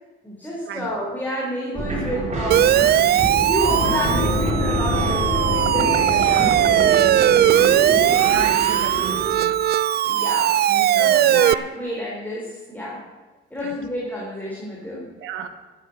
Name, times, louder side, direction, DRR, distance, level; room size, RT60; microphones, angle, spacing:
voice 1, 0.2-2.8 3.5-6.9 7.2-7.9 10.0-10.7 11.0-13.0 13.5-15.1, equal, 10° left, -5 dB, 4.2 m, -30 dB
sound 1, 1.7-9.3, right 2 dB, 35° right, 4.6 m, -26 dB
Siren, 2.5-11.5, right 11 dB, 55° right, 0.4 m, -19 dB
sound 2, 3.8-7.1, left 9 dB, 80° left, 0.8 m, -30 dB
voice 2, 6.2-6.5 8.2-9.6 10.7-11.4 13.6-13.7 15.2-15.5, right 8 dB, 85° right, 9 dB, 1.3 m, -33 dB
13.0 x 8.4 x 8.1 m, 1.2 s
cardioid pair, 90°, 20 cm